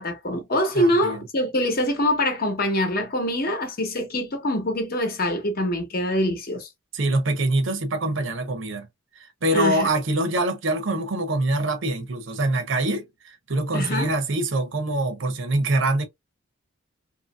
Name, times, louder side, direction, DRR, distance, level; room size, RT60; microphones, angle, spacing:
voice 1, 0.0-6.7 9.5-9.9 13.7-14.1, left 1 dB, 45° left, 0.9 m, -24 dB
voice 2, 0.7-1.2 6.9-8.9 9.4-16.1, right 2 dB, 65° right, 0.7 m, -24 dB
2.9 x 2.7 x 2.2 m
head